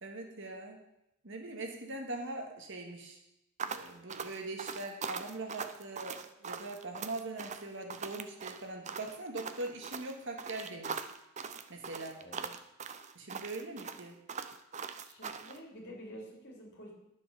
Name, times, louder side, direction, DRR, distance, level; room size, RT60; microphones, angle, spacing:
voice 1, 0.0-0.8 1.2-3.2 3.7-11.0 11.7-12.2 13.2-14.1, right 2 dB, 55° right, 2 dB, 1.8 m, -41 dB
sound 1, 3.6-15.6, right 6 dB, 30° right, 0.6 m, -41 dB
voice 2, 15.0-16.9, equal, 50° left, -2 dB, 3.6 m, -49 dB
11.0 x 7.4 x 6.8 m, 0.85 s
head